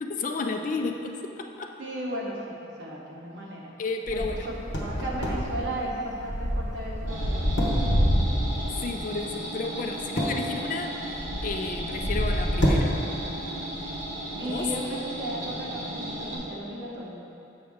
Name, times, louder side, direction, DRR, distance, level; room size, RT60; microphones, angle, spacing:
voice 1, 0.0-1.7 3.8-4.5 8.8-10.9 11.4-12.9 14.4-14.7, left 3 dB, 40° left, 4 dB, 0.4 m, -32 dB
voice 2, 1.8-3.7 4.1-4.2 4.8-8.1 14.3-17.3, right 1 dB, 65° right, -4 dB, 1.2 m, -35 dB
sound 1, 4.1-8.9 10.0-13.5 13.7-14.1 14.6-14.7, equal, 70° left, 1.1 m, -27 dB
sound 2, 7.1-16.4, right 1 dB, 40° right, 1.5 m, -36 dB
7.2 x 6.2 x 3.5 m, 2.8 s
head